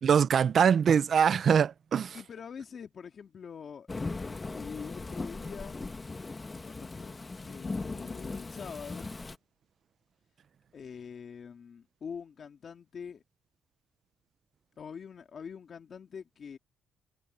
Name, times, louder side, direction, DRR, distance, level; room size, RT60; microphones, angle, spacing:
voice 1, 0.0-2.2, right 7 dB, 55° right, 0.7 m, -23 dB
voice 2, 2.1-5.8 6.6-7.2 7.5-9.2 10.7-13.2 14.8-16.6, left 6 dB, 50° left, 2.3 m, -44 dB
Thunderstorm / Rain, 3.9-9.4, left 3 dB, 25° left, 1.5 m, -38 dB
cardioid pair, 90°, 0 cm